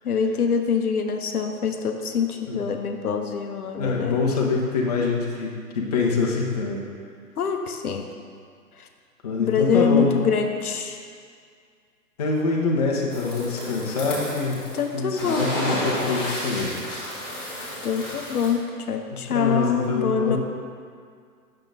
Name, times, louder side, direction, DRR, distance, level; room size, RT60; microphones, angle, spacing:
voice 1, 0.0-4.2 7.4-8.1 9.4-11.0 14.7-15.5 17.8-20.4, left 6 dB, 65° left, 5 dB, 0.7 m, -24 dB
voice 2, 3.8-6.8 9.2-10.1 12.2-14.6 14.9-16.7 19.3-20.4, left 3 dB, 25° left, -2 dB, 0.6 m, -25 dB
sound 1, 13.1-14.9 15.2-18.5, left 1 dB, ahead, 1.1 m, -31 dB
8.1 x 6.5 x 2.6 m, 2.1 s
figure-of-eight pair, 135°, 48 cm